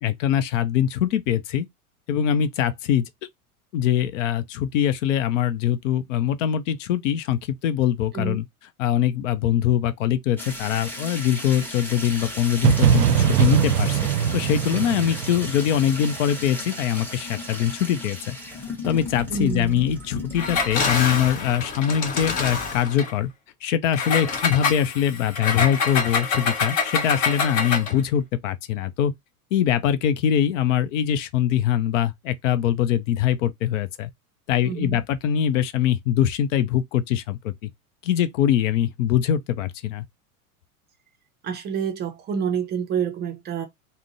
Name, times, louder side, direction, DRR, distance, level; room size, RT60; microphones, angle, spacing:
voice 1, 0.0-1.7 2.1-3.1 3.7-8.4 8.8-14.0 14.3-18.4 18.9-23.3 23.6-29.1 29.5-34.1 34.5-37.5 38.0-40.0, left 10 dB, 55° left, 0.6 m, -23 dB
sound 1, 10.4-21.7, left 1 dB, 5° left, 0.9 m, -36 dB
sound 2, 12.6-16.5, right 9 dB, 80° right, 0.5 m, -21 dB
voice 2, 19.3-19.8 34.6-35.0 41.4-43.6, right 7 dB, 25° right, 0.5 m, -28 dB
Engine, 20.3-23.1 23.9-28.0, left 5 dB, 35° left, 1.0 m, -26 dB
3.6 x 2.1 x 2.5 m
figure-of-eight pair, 85°, 45 cm